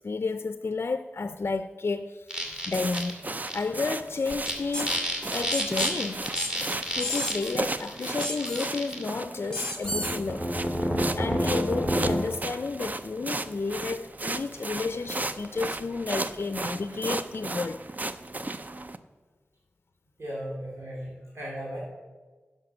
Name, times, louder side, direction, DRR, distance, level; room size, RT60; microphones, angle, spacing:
voice 1, 0.0-3.2 3.5-6.3 7.0-10.5 10.8-17.8, left 4 dB, 60° left, 10 dB, 0.4 m, -31 dB
sound 1, 2.3-3.1 3.5-3.6 4.3-4.5 4.9-9.0 9.8-12.2, equal, 15° right, 2.1 m, -30 dB
sound 2, 2.7-19.0, right 2 dB, 40° right, 0.5 m, -35 dB
sound 3, 4.7-4.9 5.5-5.9 6.4-6.5 7.0-7.5 8.2-8.7 9.5-10.2, left 1 dB, 15° left, 1.7 m, -32 dB
voice 2, 20.2-21.8, equal, 85° right, -6 dB, 2.6 m, -36 dB
11.0 x 5.7 x 6.8 m, 1.4 s
wide cardioid pair, 75°, 4 cm